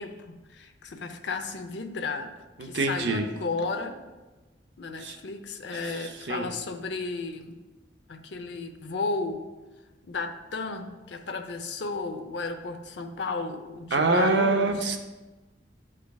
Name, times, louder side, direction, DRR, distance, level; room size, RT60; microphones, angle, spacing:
voice 1, 0.0-2.3 2.6-4.0 4.8-7.5 8.1-9.4 10.0-14.8, left 3 dB, 70° left, 6 dB, 0.6 m, -33 dB
voice 2, 2.6-3.2 5.0-5.2 6.3-6.5 13.9-15.0, right 3 dB, 65° right, 4 dB, 0.7 m, -24 dB
11.5 x 4.9 x 2.3 m, 1.2 s
head